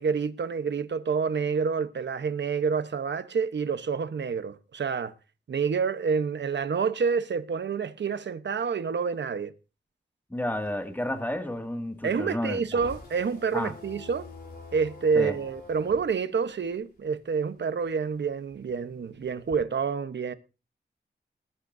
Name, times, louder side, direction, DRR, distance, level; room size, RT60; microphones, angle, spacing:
voice 1, 0.0-5.1 5.5-9.5 12.0-14.2 14.7-20.3, right 5 dB, 90° right, 1.1 m, -28 dB
voice 2, 10.3-12.6 13.5-13.7 15.2-15.4, left 1 dB, 10° left, 2.2 m, -31 dB
sound 1, 10.4-17.5 17.8-19.6, left 3 dB, 60° left, 7.1 m, -47 dB
20.0 x 13.5 x 2.7 m
wide cardioid pair, 95°, 18 cm